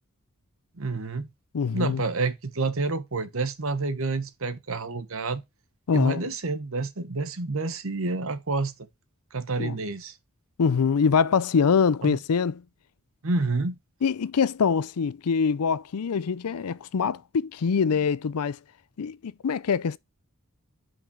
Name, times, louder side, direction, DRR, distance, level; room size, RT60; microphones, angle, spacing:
voice 1, 0.8-1.3 1.7-5.4 5.9-8.7 9.3-10.2 12.0-12.2 13.2-13.8, right 3 dB, 65° right, 1.0 m, -29 dB
voice 2, 1.5-2.0 5.9-6.2 9.6-9.8 10.6-12.6 14.0-18.6 19.0-20.0, left 6 dB, 85° left, 0.5 m, -24 dB
5.8 x 5.6 x 4.9 m
head